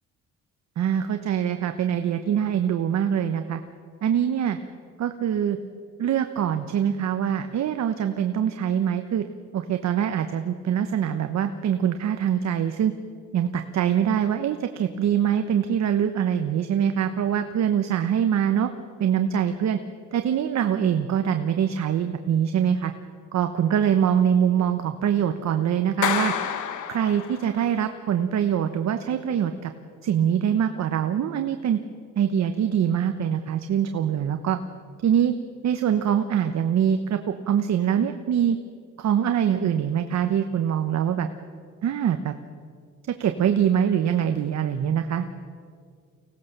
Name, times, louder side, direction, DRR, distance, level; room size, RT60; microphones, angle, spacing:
voice 1, 0.8-3.6 4.0-4.6 5.0-5.6 6.0-9.2 9.5-12.9 13.3-18.7 19.0-19.8 20.1-22.9 23.3-26.3 26.9-29.7 30.0-31.8 32.2-34.6 35.0-35.3 35.6-37.2 37.5-38.6 39.0-41.3 41.8-42.3 43.1-45.3, right 9 dB, 65° right, 8 dB, 1.1 m, -23 dB
Clapping, 26.0-27.7, left 9 dB, 75° left, 1.6 m, -28 dB
24.5 x 17.5 x 6.8 m, 2.1 s
cardioid pair, 90°, 30 cm